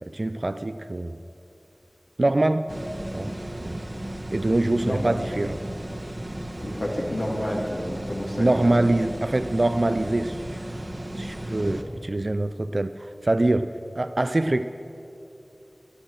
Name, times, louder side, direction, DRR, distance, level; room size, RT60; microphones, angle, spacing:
voice 1, 0.0-1.1 2.2-2.7 3.1-3.8 4.3-5.6 8.4-10.6 11.2-14.6, right 2 dB, 50° right, 11 dB, 0.3 m, -24 dB
sound 1, 2.7-11.8, right 1 dB, 35° right, 1.2 m, -35 dB
voice 2, 6.6-8.5 11.5-11.9, left 1 dB, 70° left, -3 dB, 2.5 m, -30 dB
13.0 x 9.7 x 6.6 m, 2.9 s
wide cardioid pair, 55°, 0 cm